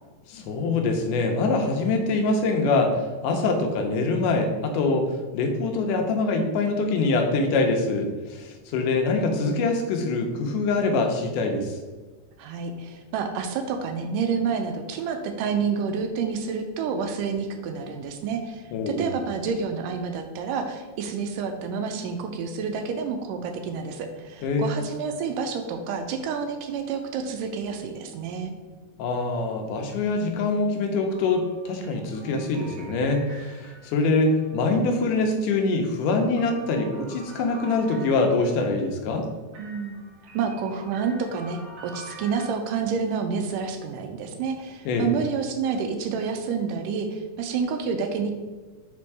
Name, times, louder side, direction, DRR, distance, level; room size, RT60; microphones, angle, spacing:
voice 1, 0.3-11.8 18.7-19.1 24.4-24.8 29.0-39.3 44.9-45.1, left 3 dB, 75° left, 4 dB, 2.1 m, -24 dB
voice 2, 12.4-28.5 39.6-40.0 40.3-48.3, right 5 dB, 80° right, 6 dB, 2.1 m, -29 dB
sound 1, 31.1-34.9 35.6-38.7 39.5-42.5, right 2 dB, 55° right, 1.8 m, -46 dB
5.1 x 4.3 x 4.7 m, 1.4 s
omnidirectional pair, 3.9 m